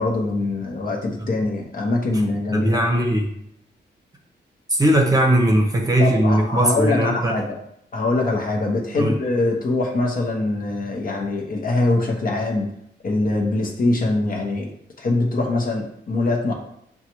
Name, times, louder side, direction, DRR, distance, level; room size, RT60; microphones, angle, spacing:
voice 1, 0.0-2.8 6.0-7.6 7.9-12.7 13.0-16.5, left 2 dB, 50° left, 0 dB, 0.9 m, -23 dB
voice 2, 2.5-3.3 4.7-7.3 9.0-9.1, right 1 dB, 20° right, 1 dB, 0.8 m, -18 dB
6.4 x 2.3 x 3.0 m, 0.74 s
cardioid pair, 90°, 19 cm